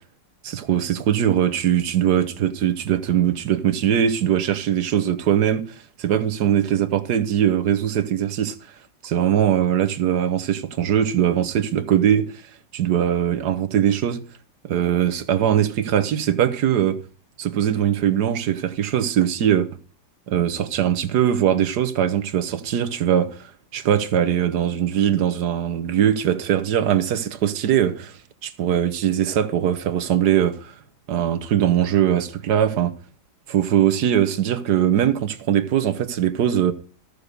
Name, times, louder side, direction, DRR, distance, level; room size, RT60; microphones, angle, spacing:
voice 1, 0.4-5.7 6.0-8.5 9.0-12.3 12.7-14.2 14.6-17.0 17.4-19.7 20.3-28.1 28.4-30.7 31.1-33.0 33.5-36.7, right 10 dB, 70° right, 1.5 m, -21 dB
13.5 x 6.7 x 6.6 m
omnidirectional pair, 1.8 m